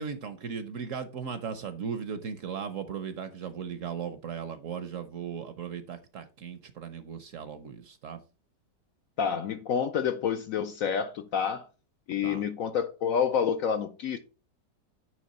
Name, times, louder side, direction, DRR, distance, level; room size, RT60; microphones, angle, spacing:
voice 1, 0.0-8.2 12.2-12.4, right 6 dB, 60° right, 0.9 m, -37 dB
voice 2, 9.2-11.7 12.1-14.2, left 7 dB, 65° left, 0.8 m, -28 dB
9.5 x 3.3 x 5.3 m
omnidirectional pair, 1.9 m